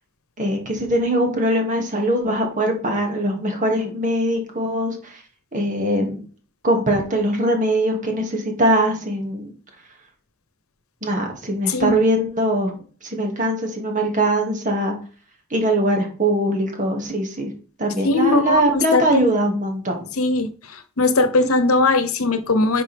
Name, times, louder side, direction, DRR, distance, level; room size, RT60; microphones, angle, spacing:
voice 1, 0.4-5.2 5.5-6.2 6.6-9.5 11.0-12.7 13.0-14.9 15.5-17.5 17.8-20.0, right 1 dB, 35° right, 2 dB, 2.4 m, -21 dB
voice 2, 18.0-19.2 20.2-20.5 21.0-22.8, left 3 dB, 80° left, 11 dB, 1.0 m, -19 dB
11.0 x 5.4 x 3.5 m, 0.41 s
head